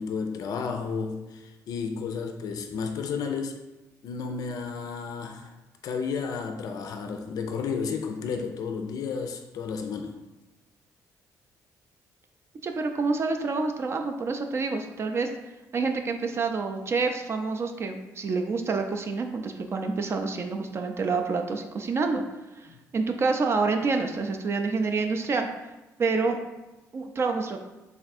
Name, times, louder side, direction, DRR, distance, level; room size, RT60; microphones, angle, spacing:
voice 1, 0.0-3.6 4.0-5.5 5.8-10.1, left 5 dB, 65° left, 5 dB, 0.4 m, -32 dB
voice 2, 12.6-15.3 15.7-22.2 22.6-22.7 22.9-25.5 26.0-26.4 26.9-27.6, right 4 dB, 40° right, 5 dB, 0.4 m, -27 dB
3.3 x 2.5 x 4.1 m, 1.0 s
cardioid pair, 85°, 7 cm